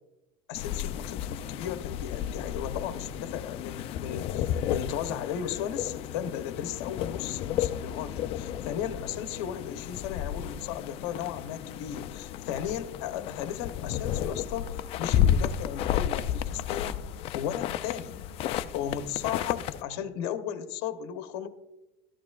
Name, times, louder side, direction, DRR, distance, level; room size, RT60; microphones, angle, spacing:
voice 1, 0.5-17.0 17.3-18.2 18.7-21.5, left 9 dB, 75° left, 9 dB, 0.9 m, -35 dB
sound 1, 0.6-19.8, left 10 dB, 45° left, 0.4 m, -32 dB
13.5 x 11.5 x 2.4 m, 0.95 s
cardioid pair, 155°, 14 cm